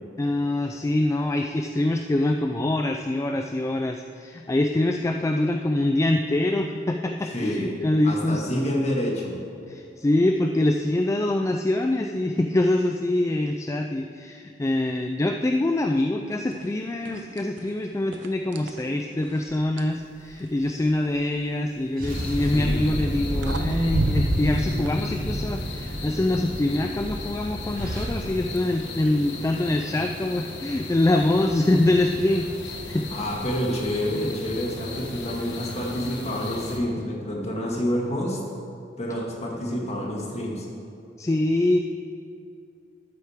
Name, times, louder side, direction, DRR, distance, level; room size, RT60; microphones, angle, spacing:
voice 1, 0.2-8.5 9.7-33.1 41.2-41.8, left 1 dB, 15° left, 4 dB, 0.3 m, -24 dB
voice 2, 7.3-7.7 8.0-9.4 22.4-22.9 33.1-38.4 39.0-40.7, equal, 40° left, -2 dB, 1.8 m, -28 dB
sound 1, 16.5-16.7 17.1-17.7 18.1-20.0 22.2-22.5 23.1-23.2 23.4-24.9, right 2 dB, 90° right, 0.6 m, -29 dB
sound 2, 20.0-20.6 22.0-28.0, equal, 55° right, 1.9 m, -30 dB
sound 3, 22.1-36.8, left 2 dB, 70° left, 1.2 m, -37 dB
12.5 x 9.1 x 3.6 m, 2.6 s
head